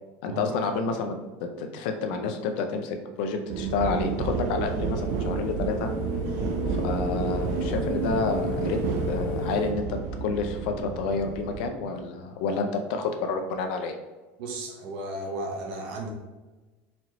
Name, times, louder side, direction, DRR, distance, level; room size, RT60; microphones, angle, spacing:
voice 1, 0.2-1.2 1.4-5.9 6.7-8.8 9.1-13.9, left 4 dB, 75° left, 5 dB, 0.6 m, -29 dB
sound 1, 3.5-11.7, right 6 dB, 55° right, 0.4 m, -31 dB
sound 2, 3.6-9.7, left 4 dB, 35° left, 0.9 m, -34 dB
voice 2, 14.4-16.1, right 2 dB, 75° right, 1 dB, 0.9 m, -34 dB
4.2 x 3.1 x 2.8 m, 1.2 s
cardioid pair, 155°, 5 cm